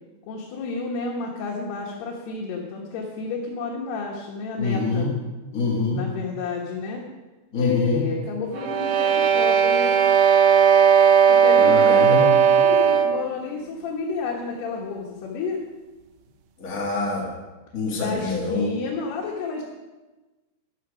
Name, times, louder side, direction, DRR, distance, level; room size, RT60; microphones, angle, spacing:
voice 1, 0.3-5.1 5.9-7.1 7.6-10.0 11.3-15.6 17.9-19.6, left 4 dB, 80° left, -2 dB, 3.5 m, -30 dB
voice 2, 4.6-5.1 5.5-6.0 7.5-8.0 11.6-12.3 16.6-17.3 17.7-18.7, left 3 dB, 45° left, -3 dB, 1.0 m, -25 dB
sound 1, 8.6-13.3, right 7 dB, 85° right, 1.8 m, -17 dB
13.0 x 12.0 x 5.1 m, 1.2 s
omnidirectional pair, 4.6 m